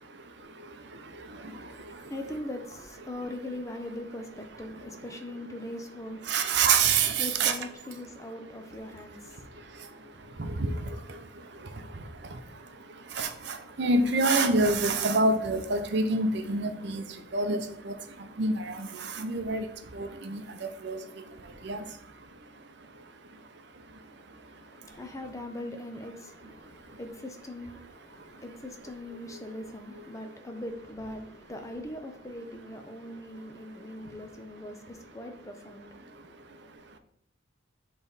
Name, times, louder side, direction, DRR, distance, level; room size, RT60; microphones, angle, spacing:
voice 1, 0.0-2.1 3.2-3.3 4.5-5.2 6.2-7.6 8.1-25.3 26.4-27.0 27.8-28.5 28.8-28.9 29.3-30.4 32.8-34.2 34.6-34.7 35.8-37.0, right 3 dB, 60° right, 0.7 m, -31 dB
voice 2, 1.3-6.6 7.2-10.4 24.4-36.4, left 1 dB, 15° left, 0.5 m, -41 dB
7.2 x 3.3 x 4.0 m
head